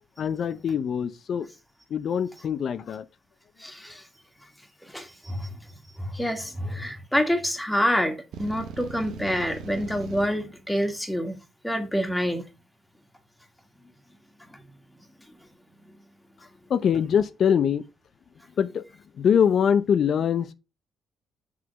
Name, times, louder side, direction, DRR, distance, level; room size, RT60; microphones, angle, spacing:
voice 1, 0.2-1.5 1.9-3.1 16.7-17.8 18.6-18.8 19.2-20.5, left 8 dB, 60° left, 0.6 m, -23 dB
voice 2, 3.6-4.1 4.8-5.6 6.0-11.4 11.6-12.4 14.5-14.6, equal, 5° left, 1.7 m, -27 dB
sound 1, 8.3-10.3, right 6 dB, 75° right, 1.0 m, -39 dB
6.3 x 3.8 x 5.8 m
cardioid pair, 90°, 0 cm